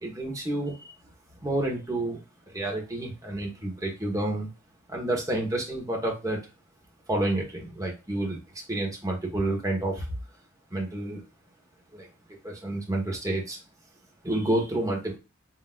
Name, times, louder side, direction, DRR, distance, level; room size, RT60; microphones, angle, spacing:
voice 1, 0.0-0.8 1.4-4.5 4.9-6.4 7.1-8.4 8.7-10.1 10.7-11.2 11.9-12.1 12.4-13.6 14.2-15.2, right 1 dB, 15° right, 0 dB, 1.4 m, -29 dB
5.8 x 3.1 x 2.5 m, 0.28 s
head